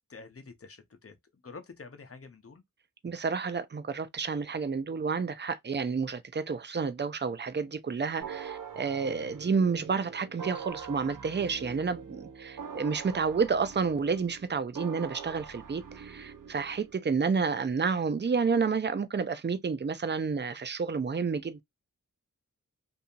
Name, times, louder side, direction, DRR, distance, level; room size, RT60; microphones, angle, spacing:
voice 1, 0.1-2.6, left 4 dB, 45° left, 0.8 m, -48 dB
voice 2, 3.0-21.6, right 5 dB, 35° right, 0.5 m, -30 dB
sound 1, 8.2-16.9, right 6 dB, 80° right, 0.6 m, -44 dB
2.7 x 2.7 x 2.3 m
wide cardioid pair, 60°, 32 cm